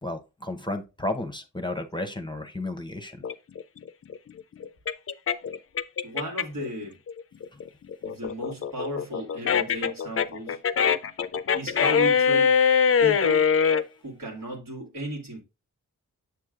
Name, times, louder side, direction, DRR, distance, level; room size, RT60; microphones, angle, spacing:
voice 1, 0.0-3.2, left 2 dB, 15° left, 0.8 m, -33 dB
sound 1, 3.2-6.7 7.1-13.8, left 6 dB, 45° left, 0.4 m, -23 dB
voice 2, 6.0-7.0 8.0-10.6 11.5-12.6 13.0-13.5 14.0-15.4, equal, 85° right, 2.0 m, -35 dB
7.0 x 6.3 x 2.4 m
cardioid pair, 50°, 32 cm